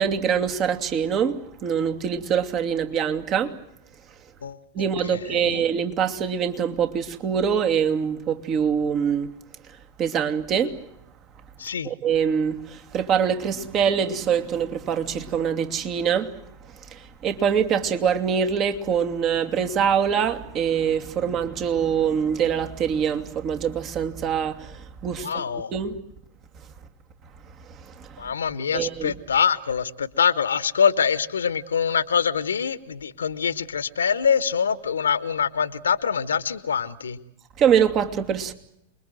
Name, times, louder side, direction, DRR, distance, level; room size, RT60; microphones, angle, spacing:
voice 1, 0.0-3.5 4.7-9.3 10.0-10.8 11.8-16.3 16.9-26.0 27.7-28.3 28.7-29.2 37.6-38.5, right 7 dB, 35° right, 2.6 m, -24 dB
voice 2, 5.1-5.6 11.6-11.9 25.2-25.7 28.2-37.2, left 7 dB, 75° left, 1.3 m, -24 dB
28.5 x 22.0 x 7.9 m
figure-of-eight pair, 100°, 0 cm